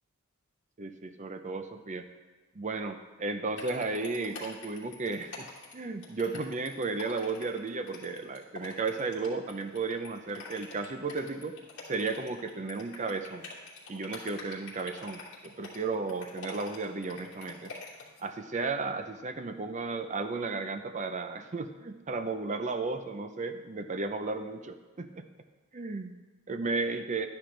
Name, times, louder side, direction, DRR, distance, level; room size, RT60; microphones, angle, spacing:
voice 1, 0.8-2.0 2.6-5.5 5.7-11.6 11.9-13.5 13.9-17.7 18.2-25.2 25.7-26.1 26.5-27.3, right 3 dB, 35° right, 8 dB, 0.6 m, -34 dB
sound 1, 3.6-18.2, left 4 dB, 60° left, 2.9 m, -46 dB
12.0 x 10.0 x 3.3 m, 1.3 s
head